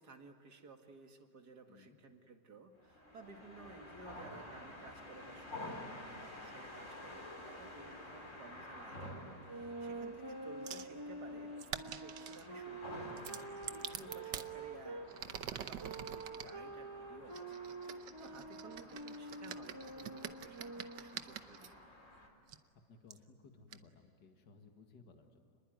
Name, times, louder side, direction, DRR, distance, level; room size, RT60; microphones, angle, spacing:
voice 1, 0.0-13.2 13.7-15.1 15.5-17.7 18.0-21.9, right 4 dB, 60° right, 4 dB, 2.6 m, -56 dB
voice 2, 1.7-2.0 13.6-13.9 22.9-25.6, left 4 dB, 75° left, 4 dB, 2.5 m, -61 dB
sound 1, 2.8-22.3, left 1 dB, 45° left, 4.1 m, -51 dB
sound 2, 9.5-15.1 15.8-21.3, right 2 dB, 15° right, 0.9 m, -47 dB
sound 3, 10.7-10.9 11.6-12.5 13.2-14.5 15.1-16.5 17.3-21.7 22.5-22.6 23.1-23.2 23.7-23.8, right 9 dB, 75° right, 1.6 m, -46 dB
29.5 x 21.0 x 9.4 m, 2.6 s
omnidirectional pair, 1.9 m